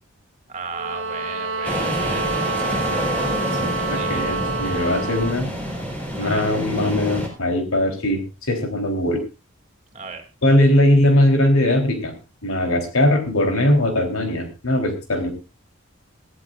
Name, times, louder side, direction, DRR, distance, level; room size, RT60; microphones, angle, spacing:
voice 1, 0.5-4.2 6.2-6.5 9.9-10.2, right 4 dB, 35° right, 5 dB, 2.8 m, -36 dB
sound 1, 0.7-5.4, right 3 dB, 65° right, 1.2 m, -27 dB
sound 2, 1.6-7.3, equal, 5° left, 4.3 m, -27 dB
voice 2, 3.9-5.5 6.2-9.2 10.4-12.1 12.4-15.3, left 1 dB, 85° left, 4 dB, 3.8 m, -20 dB
20.5 x 14.0 x 2.5 m, 0.28 s
head